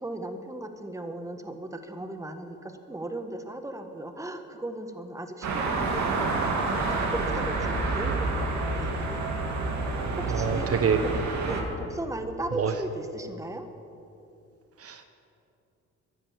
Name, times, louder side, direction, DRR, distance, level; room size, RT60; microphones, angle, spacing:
voice 1, 0.0-9.2 10.2-10.7 11.0-11.1 11.4-13.7, right 1 dB, 10° right, 7 dB, 1.4 m, -37 dB
sound 1, 5.4-11.6, right 3 dB, 65° right, 2.7 m, -28 dB
voice 2, 10.3-11.0 12.6-12.7 14.8-15.0, right 7 dB, 50° right, 8 dB, 1.1 m, -26 dB
16.0 x 11.5 x 7.3 m, 2.7 s
cardioid pair, 90°, 30 cm